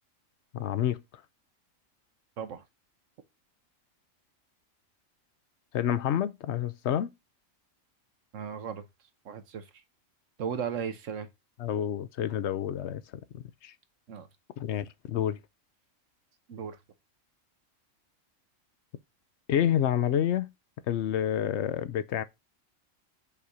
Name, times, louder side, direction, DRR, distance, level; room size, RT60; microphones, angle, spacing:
voice 1, 0.5-1.0 5.7-7.1 11.6-13.0 13.3-13.7 14.6-15.4 19.5-20.5 20.9-22.2, left 10 dB, 65° left, 0.8 m, -28 dB
voice 2, 8.3-8.8 9.2-9.8 10.4-11.3 14.1-14.3 16.5-16.8, right 7 dB, 70° right, 1.3 m, -36 dB
5.6 x 4.2 x 4.7 m
omnidirectional pair, 1.4 m